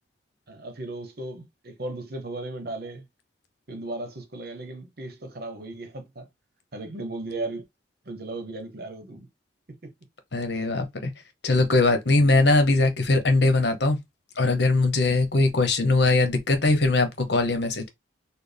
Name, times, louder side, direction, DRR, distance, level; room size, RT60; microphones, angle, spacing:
voice 1, 0.5-3.1 3.7-6.3 6.7-7.6 8.1-9.3 9.8-9.9 12.1-12.2, right 2 dB, 55° right, 0.9 m, -36 dB
voice 2, 10.3-11.1 11.4-14.0 14.4-17.9, left 2 dB, 60° left, 0.9 m, -21 dB
4.3 x 2.1 x 3.4 m
head